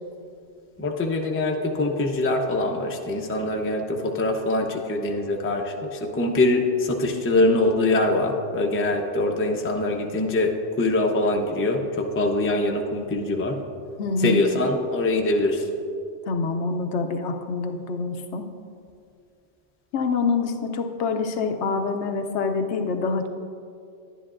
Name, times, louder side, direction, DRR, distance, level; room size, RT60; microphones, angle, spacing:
voice 1, 0.8-13.6 14.2-15.6, left 2 dB, 15° left, 2 dB, 0.4 m, -23 dB
voice 2, 14.0-14.4 16.3-18.5 19.9-23.3, left 4 dB, 75° left, 6 dB, 0.9 m, -26 dB
11.0 x 10.0 x 2.5 m, 2.5 s
omnidirectional pair, 1.2 m